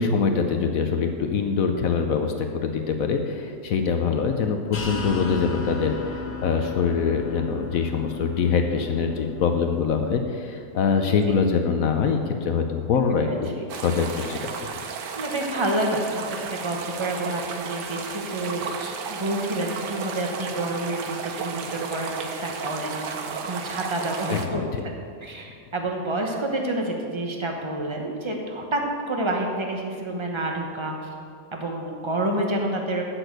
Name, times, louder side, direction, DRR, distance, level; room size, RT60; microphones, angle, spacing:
voice 1, 0.0-14.5 24.3-24.8, left 5 dB, 65° left, 5 dB, 0.9 m, -24 dB
sound 1, 4.7-10.1, left 4 dB, 45° left, 0.6 m, -35 dB
voice 2, 11.1-11.4 13.1-13.4 15.1-24.9 25.2-28.8 29.1-30.9 31.5-33.0, right 1 dB, 25° right, 1 dB, 0.7 m, -29 dB
sound 2, 13.7-24.5, right 6 dB, 70° right, 1.3 m, -34 dB
7.9 x 6.2 x 7.8 m, 2.3 s
omnidirectional pair, 2.0 m